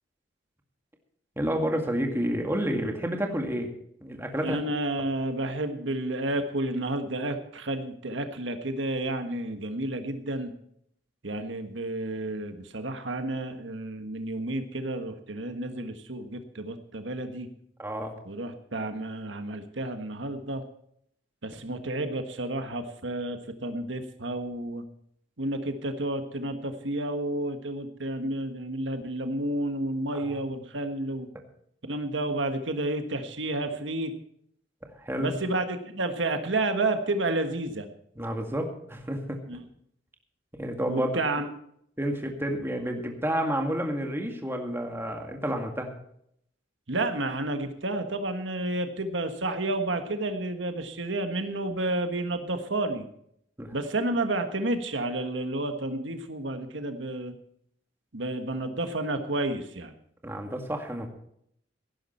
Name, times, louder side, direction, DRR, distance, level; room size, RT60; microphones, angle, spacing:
voice 1, 1.4-3.7 4.0-4.6 17.8-18.1 30.2-30.5 35.0-35.3 38.2-39.4 40.5-41.1 42.0-45.9 53.6-53.7 60.2-61.1, equal, 15° right, 3 dB, 2.0 m, -30 dB
voice 2, 4.4-10.5 11.2-17.5 18.2-20.6 21.4-24.8 25.4-31.3 31.8-34.1 35.2-37.9 39.5-39.6 40.9-41.5 46.9-53.1 53.7-57.3 58.1-59.9, right 2 dB, 85° right, 7 dB, 1.5 m, -31 dB
17.0 x 11.0 x 4.4 m, 0.69 s
head